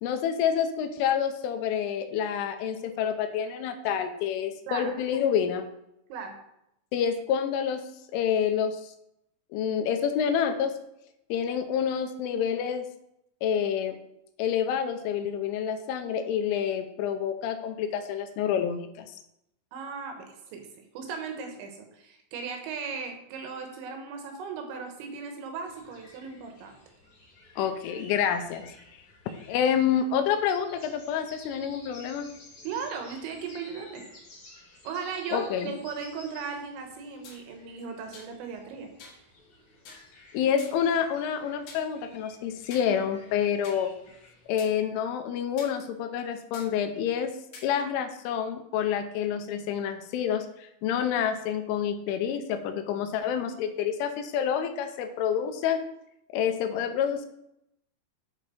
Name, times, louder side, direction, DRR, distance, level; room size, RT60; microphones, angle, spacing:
voice 1, 0.0-5.7 6.9-7.8 8.1-8.9 9.5-10.7 11.3-12.9 13.4-14.0 14.4-19.1 27.6-28.7 29.5-32.3 35.3-35.7 40.3-43.9 44.5-47.3 47.6-55.8 56.3-57.3, left 8 dB, 85° left, 7 dB, 3.2 m, -28 dB
voice 2, 19.7-26.8 32.6-34.1 34.8-38.9, right 5 dB, 75° right, 4 dB, 3.2 m, -37 dB
sound 1, 25.6-44.5, left 2 dB, 40° left, 1.8 m, -53 dB
sound 2, 37.2-37.4 38.1-38.3 39.0-39.2 39.8-40.1 40.6-40.8 41.7-41.9 42.7-42.9 43.6-43.8 44.6-44.7 45.6-45.7 46.5-46.7 47.5-47.7, left 4 dB, 60° left, 2.7 m, -46 dB
10.5 x 4.9 x 4.1 m, 0.81 s
omnidirectional pair, 5.6 m